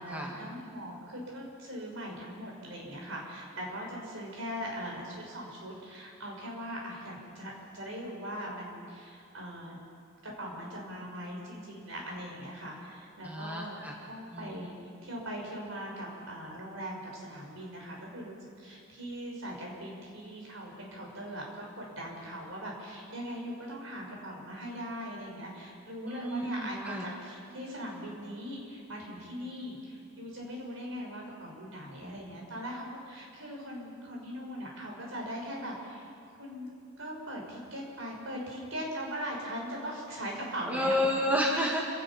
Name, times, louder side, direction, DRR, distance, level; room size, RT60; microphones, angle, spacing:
voice 1, 0.0-9.8 10.2-13.8 14.1-14.8 15.0-36.7 37.0-41.1, equal, 70° right, -1 dB, 6.0 m, -40 dB
voice 2, 13.2-13.9 26.0-27.1 40.7-41.8, left 1 dB, 10° right, -2 dB, 2.1 m, -30 dB
27.5 x 17.5 x 5.8 m, 2.4 s
head